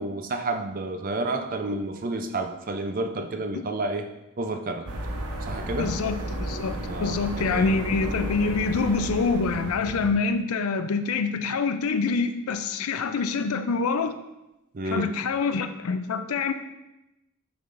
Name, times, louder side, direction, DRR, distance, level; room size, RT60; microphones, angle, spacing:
voice 1, 0.0-4.1 4.4-4.9 5.4-5.9 6.9-7.7 14.7-15.2, right 2 dB, 40° right, 6 dB, 0.4 m, -30 dB
sound 1, 4.9-10.1, right 1 dB, 90° right, 0.9 m, -33 dB
voice 2, 5.8-14.1 14.9-16.5, left 4 dB, 80° left, 9 dB, 0.4 m, -26 dB
6.8 x 5.4 x 2.6 m, 0.96 s
head